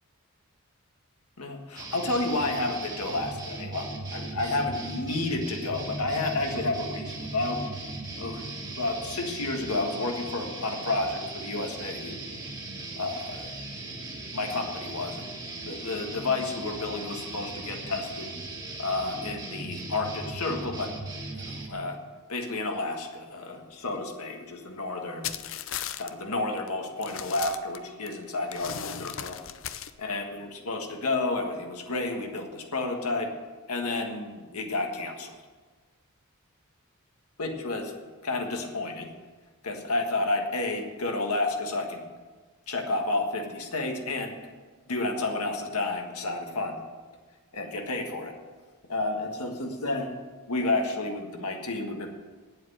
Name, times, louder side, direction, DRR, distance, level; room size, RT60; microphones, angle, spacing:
voice 1, 1.4-7.6 8.2-8.4 8.7-12.2 13.0-13.6 14.3-15.3 15.6-18.3 18.8-20.9 21.3-22.0 22.3-25.3 26.0-29.4 30.0-33.3 33.7-35.4 37.4-37.9 38.2-39.1 39.6-42.0 42.7-44.4 44.9-46.8 47.5-48.3 48.9-50.1 50.5-52.1, left 2 dB, 90° left, 3 dB, 1.6 m, -31 dB
sound 1, 1.8-21.7, right 2 dB, 20° right, 1.6 m, -38 dB
sound 2, 25.2-26.1 26.6-26.7 27.0-28.1 28.5-29.9, left 9 dB, 60° left, 0.6 m, -36 dB
9.3 x 7.7 x 9.3 m, 1.4 s
head